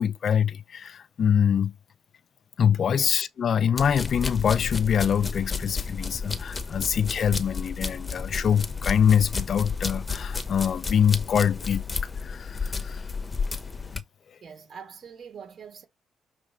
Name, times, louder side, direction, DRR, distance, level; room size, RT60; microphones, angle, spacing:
voice 1, 0.0-1.7 2.6-13.0 13.9-14.0, left 8 dB, 55° left, 0.4 m, -24 dB
sound 1, 3.8-14.0, left 4 dB, 25° left, 1.0 m, -32 dB
voice 2, 14.4-15.8, right 6 dB, 55° right, 3.0 m, -43 dB
6.5 x 3.4 x 5.0 m
cardioid pair, 90°, 0 cm